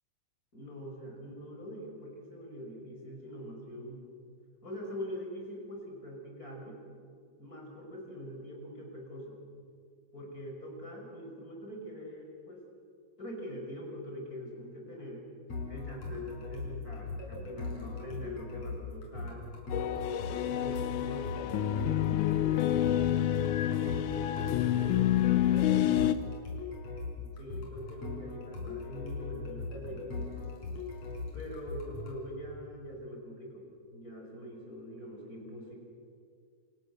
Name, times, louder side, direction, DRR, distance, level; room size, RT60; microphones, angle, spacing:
voice 1, 0.5-4.0 4.6-6.9 7.4-9.4 10.1-12.6 13.2-15.3 15.7-19.5 20.4-22.6 23.8-25.8 27.2-30.3 31.3-33.6 33.9-35.7, equal, 20° left, 0 dB, 6.1 m, -44 dB
sound 1, 15.5-32.2, left 3 dB, 40° left, 6.2 m, -39 dB
sound 2, 19.7-26.2, left 12 dB, 75° left, 1.9 m, -28 dB
28.0 x 28.0 x 6.8 m, 2.2 s
omnidirectional pair, 4.6 m